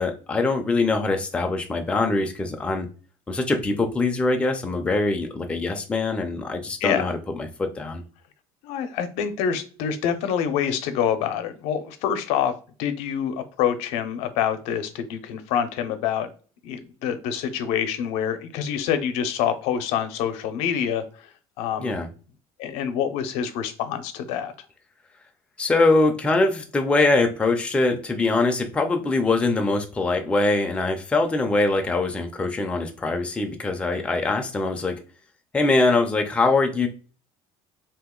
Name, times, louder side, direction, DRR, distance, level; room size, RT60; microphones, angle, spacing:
voice 1, 0.0-2.9 3.3-8.0 21.8-22.1 25.6-35.0 35.5-36.9, left 3 dB, 10° left, 4 dB, 0.4 m, -23 dB
voice 2, 6.8-7.1 8.6-12.5 12.8-16.3 16.6-21.3 21.6-22.0 22.6-24.5, left 8 dB, 75° left, 9 dB, 0.6 m, -26 dB
2.8 x 2.4 x 3.7 m, 0.37 s
cardioid pair, 155°, 11 cm